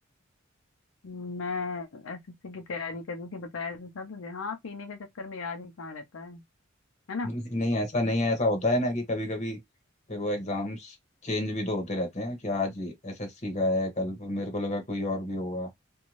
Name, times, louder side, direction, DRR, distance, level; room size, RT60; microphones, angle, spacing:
voice 1, 1.0-6.4 7.1-7.4, left 4 dB, 80° left, 0.6 m, -36 dB
voice 2, 7.2-9.6 10.1-10.9 11.2-15.7, left 1 dB, 35° left, 0.9 m, -29 dB
2.6 x 2.2 x 3.0 m
head